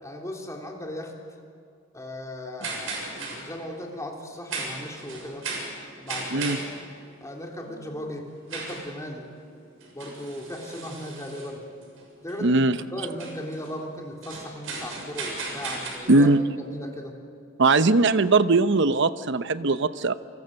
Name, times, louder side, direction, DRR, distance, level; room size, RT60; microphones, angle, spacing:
voice 1, 0.0-1.1 1.9-5.5 6.0-6.6 7.2-9.3 9.9-11.6 12.2-16.3 16.6-17.2, left 1 dB, 15° left, 0 dB, 3.3 m, -37 dB
sound 1, 2.6-15.9, right 3 dB, 85° right, 7.0 m, -37 dB
voice 2, 12.4-12.8 16.1-16.4 17.6-20.1, right 3 dB, 65° right, 12 dB, 0.9 m, -20 dB
28.5 x 25.0 x 6.7 m, 2.4 s
head